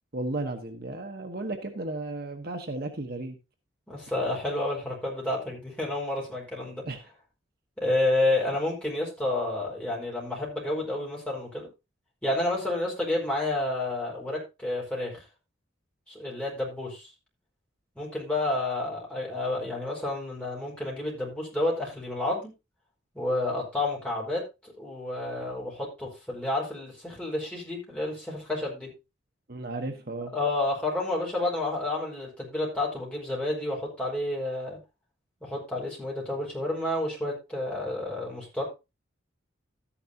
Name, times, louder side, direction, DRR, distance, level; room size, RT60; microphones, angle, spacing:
voice 1, 0.1-3.4 6.9-7.0 29.5-30.3, right 2 dB, 50° right, 5 dB, 1.2 m, -34 dB
voice 2, 3.9-6.8 7.8-11.7 12.2-15.1 16.1-17.1 18.0-22.5 23.1-28.9 30.3-34.8 35.4-38.7, left 2 dB, 5° left, -4 dB, 5.2 m, -30 dB
13.0 x 10.0 x 2.8 m, 0.26 s
head